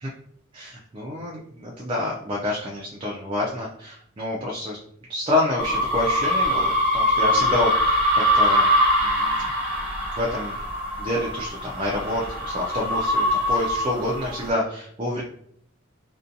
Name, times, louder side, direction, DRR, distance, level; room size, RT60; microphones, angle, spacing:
voice 1, 0.5-4.8 5.1-8.7 9.0-9.5 10.2-10.6 11.0-15.2, left 1 dB, 25° right, -3 dB, 0.3 m, -28 dB
sound 1, 5.6-14.5, equal, 5° right, 0.8 m, -23 dB
2.5 x 2.2 x 2.6 m, 0.65 s
head